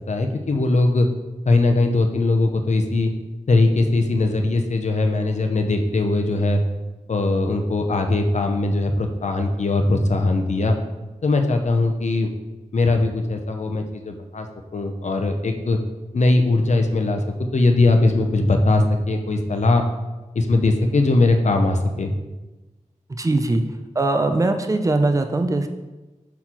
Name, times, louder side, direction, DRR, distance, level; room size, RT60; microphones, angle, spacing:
voice 1, 0.1-1.1 1.5-3.1 3.5-6.6 7.1-10.8 11.2-12.3 12.7-14.5 14.7-15.8 16.1-19.8 20.3-22.1, left 2 dB, 65° left, 5 dB, 0.7 m, -20 dB
voice 2, 23.2-23.6 24.0-25.7, right 2 dB, 25° right, 7 dB, 0.5 m, -20 dB
5.9 x 4.2 x 4.4 m, 1.1 s
wide cardioid pair, 85°, 13 cm